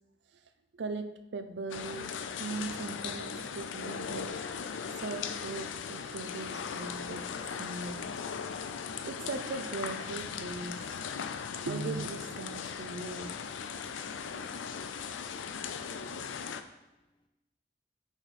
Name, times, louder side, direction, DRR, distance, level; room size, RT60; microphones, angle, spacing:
voice 1, 0.7-4.3 5.0-7.3 7.6-8.1 9.0-10.8 11.6-13.4, right 3 dB, 65° right, 9 dB, 0.5 m, -39 dB
sound 1, 1.7-16.6, left 6 dB, 90° left, 0.4 m, -38 dB
voice 2, 15.4-17.3, left 2 dB, 25° left, 4 dB, 0.6 m, -75 dB
6.1 x 5.1 x 4.2 m, 0.98 s
head